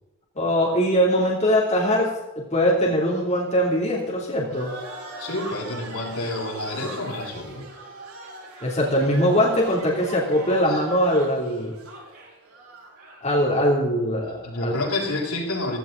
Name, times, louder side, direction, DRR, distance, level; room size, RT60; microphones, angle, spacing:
voice 1, 0.3-4.7 8.6-11.7 13.2-14.7, equal, 30° left, -4 dB, 3.2 m, -22 dB
sound 1, 4.5-13.3, right 2 dB, 80° right, 7.5 m, -40 dB
voice 2, 5.2-7.6 10.7-10.8 14.4-15.8, left 2 dB, 85° left, -3 dB, 6.8 m, -29 dB
16.5 x 16.5 x 4.0 m, 1.0 s
head